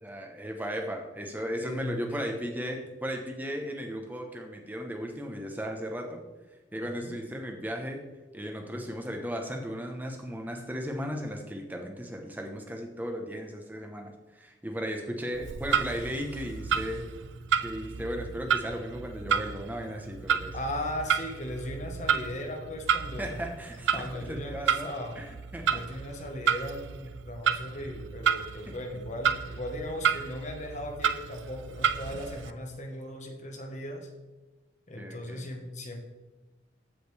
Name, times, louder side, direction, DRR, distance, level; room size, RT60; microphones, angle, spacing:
voice 1, 0.0-6.2 6.7-8.0 8.3-17.0 17.6-20.5 23.2-25.3 25.5-25.8 28.7-28.8 35.0-35.4, equal, 10° right, 2 dB, 1.0 m, -36 dB
voice 2, 1.6-2.2 6.9-7.1 20.5-23.4 23.9-25.2 25.7-34.1 34.9-36.0, left 1 dB, 40° left, 3 dB, 1.3 m, -37 dB
Clock, 15.3-32.5, right 7 dB, 75° right, 0.5 m, -31 dB
15.0 x 5.1 x 3.4 m, 1.2 s
head